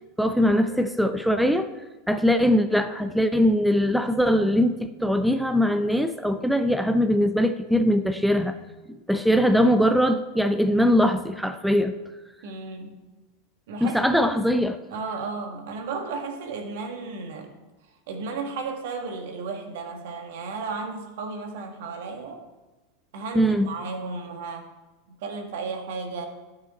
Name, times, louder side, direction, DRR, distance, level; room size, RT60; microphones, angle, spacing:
voice 1, 0.2-1.7 2.1-8.5 9.1-11.9 13.8-14.8 23.3-23.7, equal, ahead, 8 dB, 0.6 m, -21 dB
voice 2, 12.4-13.0 13.7-14.4 14.9-17.5 18.1-22.4 23.1-24.7 25.1-26.3, right 4 dB, 65° right, 4 dB, 1.5 m, -34 dB
12.0 x 6.7 x 4.0 m, 1.1 s
hypercardioid pair, 90°, 0 cm